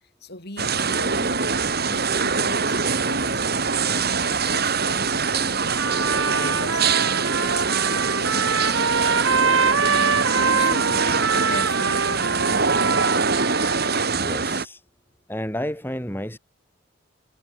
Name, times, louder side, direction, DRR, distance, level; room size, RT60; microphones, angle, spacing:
voice 1, 0.2-11.0 11.3-13.2, left 2 dB, 50° left, 7.8 m, -40 dB
Sound atmosphere inside a former underground military base, 0.6-14.6, right 5 dB, 50° right, 2.6 m, -23 dB
Bowed string instrument, 2.5-6.7, left 3 dB, 85° left, 6.2 m, -48 dB
Trumpet, 5.7-14.2, right 5 dB, 65° right, 2.0 m, -24 dB
voice 2, 14.1-14.8 15.3-16.4, equal, 10° left, 5.1 m, -31 dB
head